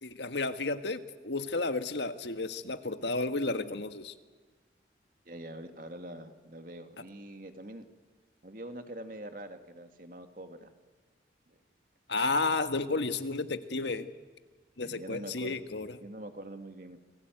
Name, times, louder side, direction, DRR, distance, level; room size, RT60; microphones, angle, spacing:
voice 1, 0.0-4.1 12.1-14.1 14.8-15.9, left 3 dB, 80° left, 9 dB, 1.6 m, -32 dB
voice 2, 5.3-7.8 8.4-10.7 11.5-11.6 14.8-15.6 16.0-17.0, right 1 dB, 50° right, 7 dB, 2.3 m, -44 dB
29.0 x 21.5 x 9.3 m, 1.4 s
head